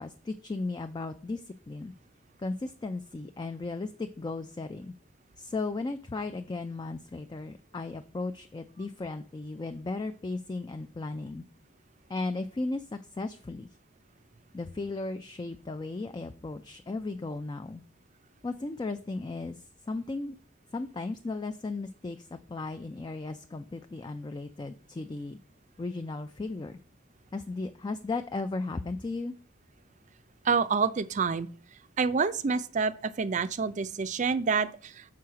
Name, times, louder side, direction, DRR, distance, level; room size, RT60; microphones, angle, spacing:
voice 1, 0.0-1.9 2.4-4.9 5.4-11.4 12.1-13.7 14.5-17.8 18.4-20.4 20.7-25.4 25.8-26.8 27.3-29.3, left 3 dB, 20° left, 0.3 m, -36 dB
voice 2, 30.4-31.5 32.0-35.0, right 5 dB, 40° right, 0.4 m, -28 dB
6.3 x 4.7 x 5.7 m
head